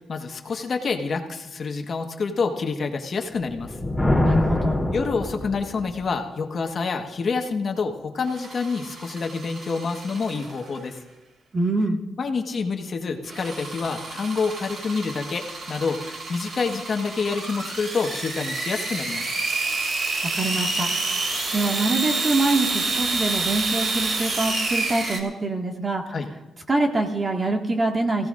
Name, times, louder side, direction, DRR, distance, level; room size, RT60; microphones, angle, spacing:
voice 1, 0.0-3.8 4.9-11.0 12.2-19.3 26.1-26.3, left 4 dB, 50° left, 4 dB, 1.4 m, -27 dB
Thunder, 3.4-6.0, left 1 dB, ahead, 3.3 m, -25 dB
voice 2, 4.2-4.8 11.5-12.0 20.3-20.9 21.5-26.1 26.7-28.3, right 2 dB, 30° right, 2 dB, 1.9 m, -24 dB
sound 1, 8.3-10.8 13.3-25.2, right 3 dB, 55° right, 2.6 m, -29 dB
23.0 x 16.5 x 2.6 m, 1.1 s
cardioid pair, 110°, 0 cm